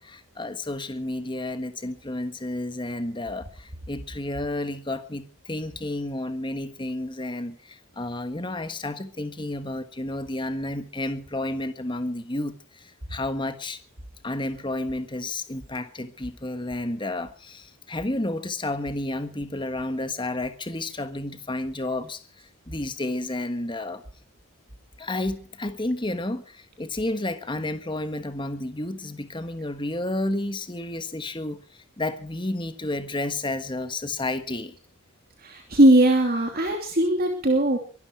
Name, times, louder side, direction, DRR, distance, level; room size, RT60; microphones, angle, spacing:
voice 1, 0.0-13.8 14.2-22.2 22.7-24.0 25.0-31.6 32.0-34.7, left 1 dB, 20° left, 1.4 m, -31 dB
voice 2, 35.4-37.8, right 1 dB, 40° right, 2.9 m, -19 dB
23.5 x 12.5 x 4.6 m
head